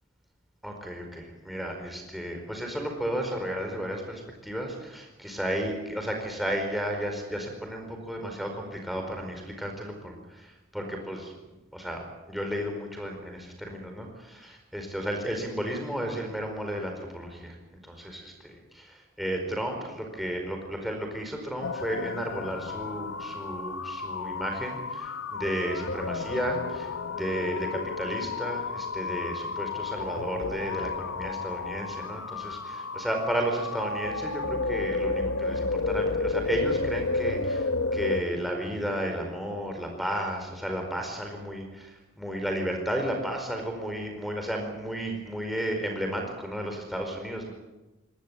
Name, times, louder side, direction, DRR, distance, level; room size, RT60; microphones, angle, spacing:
voice 1, 0.6-11.3 11.7-47.5, equal, ahead, 2 dB, 4.7 m, -33 dB
sound 1, 21.6-38.2, left 3 dB, 75° left, 1.1 m, -32 dB
22.5 x 18.5 x 9.2 m, 1.1 s
head